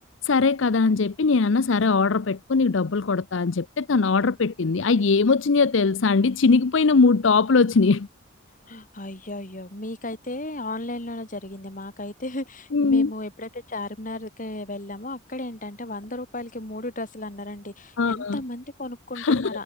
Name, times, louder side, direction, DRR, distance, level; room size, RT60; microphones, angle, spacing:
voice 1, 0.0-8.1 12.7-13.1 18.0-18.4 19.2-19.5, left 4 dB, 70° left, 0.6 m, -21 dB
voice 2, 8.7-19.6, left 2 dB, 40° left, 5.0 m, -35 dB
head